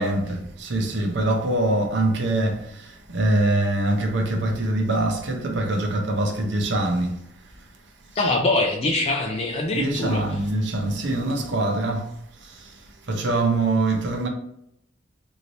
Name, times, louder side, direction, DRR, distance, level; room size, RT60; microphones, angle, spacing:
voice 1, 0.0-7.2 9.7-12.1 12.5-12.6 13.1-14.3, right 2 dB, 60° right, 0.6 m, -24 dB
voice 2, 8.2-10.2, left 2 dB, 30° left, 0.3 m, -23 dB
3.2 x 2.7 x 2.6 m
head